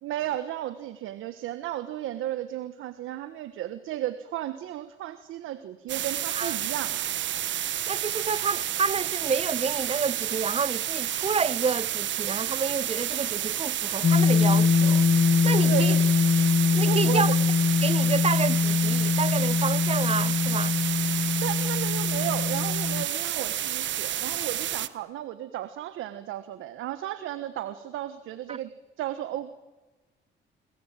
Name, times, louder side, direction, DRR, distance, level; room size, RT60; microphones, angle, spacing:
voice 1, 0.0-7.0 15.7-16.0 16.9-17.3 21.4-28.7 29.0-29.6, right 12 dB, 90° right, 1.4 m, -34 dB
sound 1, 5.9-24.9, right 11 dB, 70° right, 1.3 m, -30 dB
voice 2, 7.9-15.1 15.4-16.0 16.7-17.4 17.8-20.8 28.5-28.6, right 5 dB, 30° right, 0.9 m, -29 dB
sound 2, 14.0-23.0, left 5 dB, 35° left, 0.8 m, -23 dB
29.5 x 22.0 x 9.2 m
cardioid pair, 90°, 20 cm